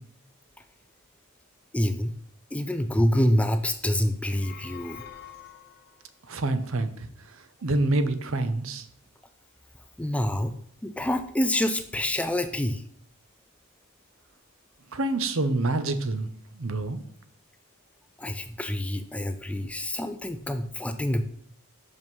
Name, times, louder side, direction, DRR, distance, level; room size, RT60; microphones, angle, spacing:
voice 1, 1.7-2.1 2.5-5.0 10.0-10.5 10.8-12.8 18.2-21.3, left 1 dB, 5° left, 8 dB, 0.3 m, -26 dB
sound 1, 4.2-6.1, left 9 dB, 45° left, 0.7 m, -46 dB
voice 2, 6.3-7.1 7.6-8.8 14.9-16.3 16.5-17.0, right 2 dB, 60° right, 11 dB, 0.7 m, -26 dB
6.2 x 5.3 x 5.4 m, 0.64 s
head